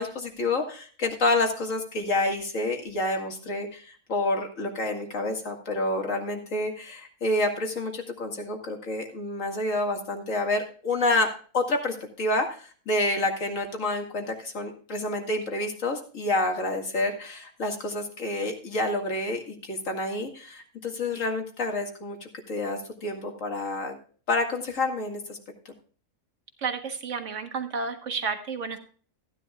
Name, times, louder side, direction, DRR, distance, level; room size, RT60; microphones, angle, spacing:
voice 1, 0.0-11.3 11.5-22.2 22.5-24.0 24.3-25.4, left 2 dB, 55° left, 3 dB, 2.4 m, -28 dB
voice 2, 26.6-28.8, right 5 dB, 55° right, 6 dB, 1.7 m, -31 dB
15.0 x 10.5 x 2.4 m, 0.42 s
omnidirectional pair, 1.6 m